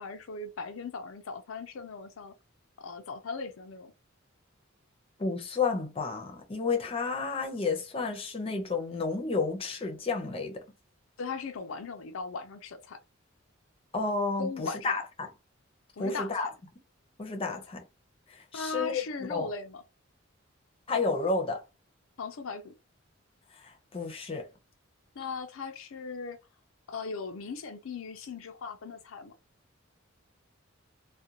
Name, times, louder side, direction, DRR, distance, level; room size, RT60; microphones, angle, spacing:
voice 1, 0.0-2.3 2.8-3.9 11.2-13.0 14.4-15.0 16.0-16.5 17.5-17.6 18.5-19.8 22.2-22.7 25.2-26.4 26.9-29.3, left 4 dB, 85° left, 0.5 m, -38 dB
voice 2, 5.2-10.6 13.9-15.3 16.0-16.5 17.2-17.8 18.3-19.0 19.3-19.5 20.9-21.6 23.6-24.5, left 4 dB, 30° left, 0.6 m, -31 dB
2.4 x 2.2 x 2.8 m
head